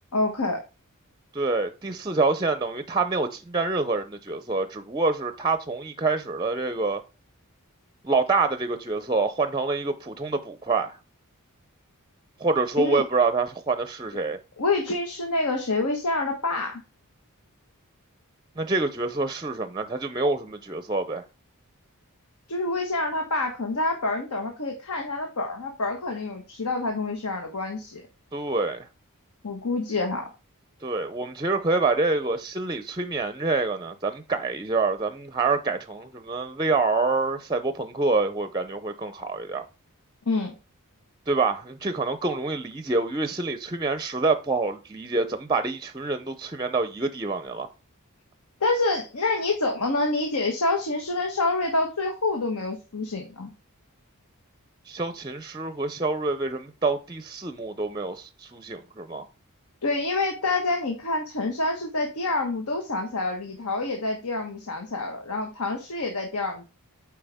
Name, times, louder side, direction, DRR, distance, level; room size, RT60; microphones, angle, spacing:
voice 1, 0.1-0.6 12.8-13.0 14.6-16.8 22.5-28.0 29.4-30.3 40.3-40.5 48.6-53.5 59.8-66.6, left 2 dB, 80° left, 1.3 m, -27 dB
voice 2, 1.3-7.0 8.0-11.0 12.4-14.4 18.6-21.2 28.3-28.9 30.8-39.6 41.3-47.7 54.9-59.3, right 3 dB, 20° right, 0.5 m, -26 dB
8.8 x 4.7 x 3.5 m
head